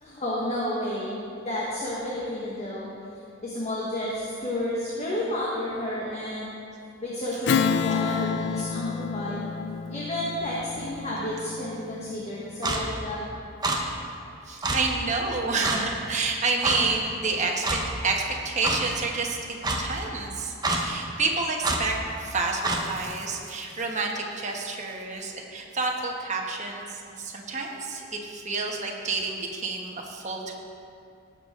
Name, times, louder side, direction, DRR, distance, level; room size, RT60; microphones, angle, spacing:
voice 1, 0.0-2.9 3.4-6.5 7.0-9.4 9.9-13.3, left 1 dB, 35° left, -6 dB, 1.4 m, -31 dB
Strum, 7.5-12.4, left 6 dB, 60° left, 0.4 m, -29 dB
Clock, 12.6-12.8 13.6-13.8 14.6-14.8 15.6-15.8 16.6-16.8 17.6-17.8 18.6-18.8 19.6-19.8 20.6-20.8 21.6-21.8 22.6-22.8, right 2 dB, 20° right, 0.9 m, -26 dB
voice 2, 14.4-30.5, right 3 dB, 35° right, 0 dB, 1.2 m, -29 dB
17.5 x 6.9 x 3.7 m, 2.5 s
head